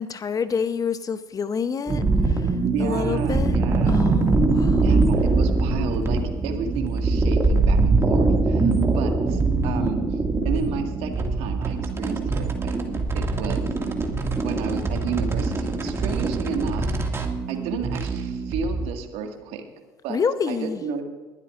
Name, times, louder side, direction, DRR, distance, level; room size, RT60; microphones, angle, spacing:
voice 1, 0.0-2.5 2.8-3.6 3.9-5.1 20.1-20.8, left 6 dB, 30° left, 13 dB, 0.8 m, -28 dB
sound 1, 1.9-18.9, right 3 dB, 25° right, 2.1 m, -23 dB
voice 2, 2.6-4.0 4.8-10.2 10.4-12.8 13.1-13.7 14.4-17.2 17.5-19.7 20.0-20.2 20.5-21.0, right 6 dB, 65° right, 5 dB, 1.9 m, -32 dB
21.5 x 12.0 x 2.5 m, 1.3 s
hypercardioid pair, 65°, 11 cm